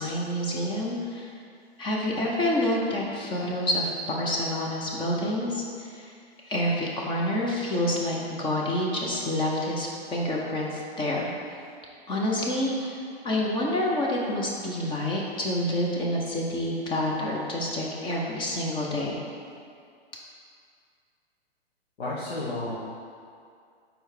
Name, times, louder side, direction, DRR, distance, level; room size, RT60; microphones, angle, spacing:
voice 1, 0.0-1.3 1.8-6.1 6.4-11.3 12.1-13.0 13.2-19.2, left 1 dB, 15° left, -3 dB, 0.7 m, -28 dB
voice 2, 22.0-22.8, left 2 dB, 75° left, -8 dB, 1.3 m, -31 dB
4.4 x 4.4 x 5.1 m, 2.3 s
hypercardioid pair, 120°, 31 cm